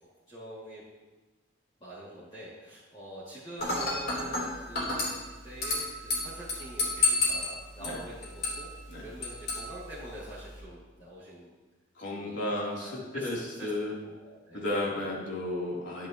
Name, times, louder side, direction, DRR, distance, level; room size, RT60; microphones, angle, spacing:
voice 1, 0.3-0.8 1.8-5.2 5.4-8.7 9.0-11.5 12.1-14.8, right 1 dB, 30° left, -11 dB, 2.5 m, -45 dB
Dishes pots and pans / Glass, 3.6-10.6, left 3 dB, 50° left, 3.6 m, -32 dB
voice 2, 11.9-13.9 14.5-16.1, left 1 dB, 65° left, -5 dB, 3.3 m, -33 dB
12.0 x 10.5 x 3.0 m, 1.2 s
head